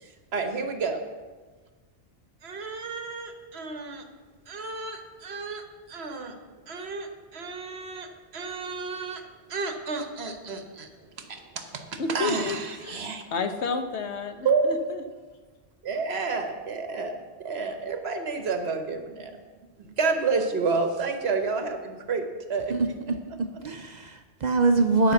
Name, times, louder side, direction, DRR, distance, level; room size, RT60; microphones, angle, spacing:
voice 1, 0.0-1.0 2.4-4.0 4.5-5.6 5.9-6.3 6.7-9.2 9.5-10.9 11.2-13.2 14.4-14.7 15.8-19.4 20.0-22.2 22.5-22.7, right 4 dB, 65° right, 6 dB, 1.2 m, -30 dB
voice 2, 12.0-12.6 12.8-15.0, left 4 dB, 80° left, 7 dB, 1.2 m, -31 dB
voice 3, 22.7-23.2 23.6-25.1, right 3 dB, 50° right, 7 dB, 0.6 m, -23 dB
10.0 x 5.3 x 6.9 m, 1.3 s
omnidirectional pair, 1.1 m